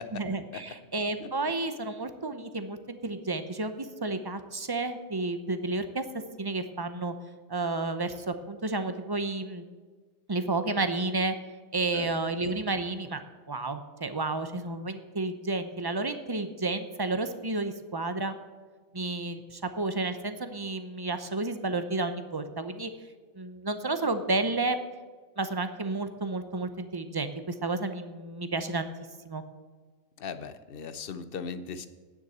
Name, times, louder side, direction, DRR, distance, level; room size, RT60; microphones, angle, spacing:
voice 1, 0.1-6.0 6.4-7.1 7.5-9.6 10.3-11.3 11.7-13.2 13.5-18.3 18.9-22.9 23.4-24.8 25.4-28.9 29.2-29.4, right 2 dB, 25° right, 9 dB, 0.6 m, -31 dB
voice 2, 30.2-31.9, left 6 dB, 50° left, 12 dB, 0.8 m, -38 dB
9.6 x 7.5 x 8.1 m, 1.4 s
omnidirectional pair, 1.4 m